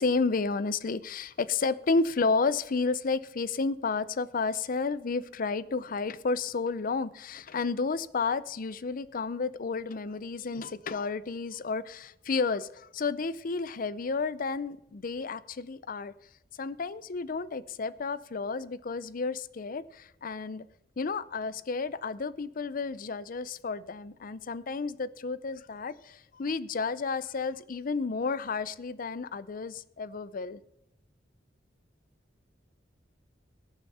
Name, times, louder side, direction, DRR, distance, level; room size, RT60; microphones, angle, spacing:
voice 1, 0.0-16.1 16.6-20.7 21.0-30.6, left 4 dB, 50° left, 18 dB, 0.5 m, -31 dB
19.0 x 7.0 x 4.2 m, 0.86 s
head